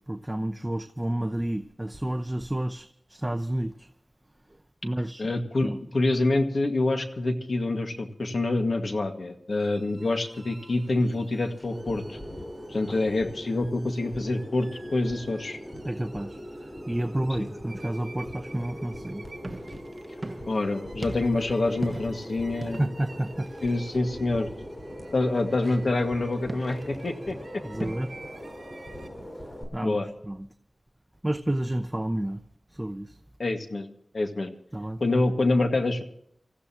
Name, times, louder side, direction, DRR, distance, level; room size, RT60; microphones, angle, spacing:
voice 1, 0.1-3.9 4.8-5.3 5.6-5.8 12.9-13.0 15.8-19.2 22.8-23.5 27.6-28.1 29.7-30.0 30.3-30.5 31.2-32.4 32.7-33.2 34.7-35.0, right 1 dB, 15° right, 0.8 m, -30 dB
voice 2, 5.2-5.7 5.9-12.2 12.7-15.6 17.4-17.5 20.5-22.9 23.6-24.5 25.1-27.6 29.8-30.1 33.4-33.9 34.1-34.5 35.0-36.0, left 2 dB, 70° left, 2.0 m, -26 dB
sound 1, 9.5-29.1, right 3 dB, 60° right, 5.9 m, -52 dB
sound 2, 10.0-29.6, equal, 35° left, 7.8 m, -41 dB
sound 3, 19.1-28.0, right 2 dB, 35° right, 1.2 m, -41 dB
28.0 x 15.0 x 3.1 m
wide cardioid pair, 75°, 0 cm